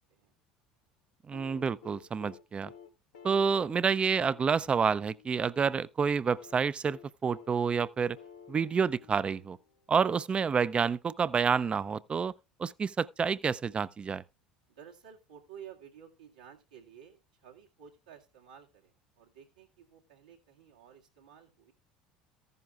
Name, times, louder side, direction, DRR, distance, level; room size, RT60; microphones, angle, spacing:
sound 1, 1.3-5.4 6.4-10.0 11.4-11.5, left 8 dB, 75° left, 1.0 m, -53 dB
voice 1, 1.3-2.7 3.2-8.2 8.5-9.6 9.9-12.3 12.6-14.2, right 6 dB, 30° right, 0.5 m, -28 dB
voice 2, 14.7-21.7, right 8 dB, 85° right, 2.0 m, -53 dB
14.0 x 10.5 x 2.4 m
hypercardioid pair, 70°, 4 cm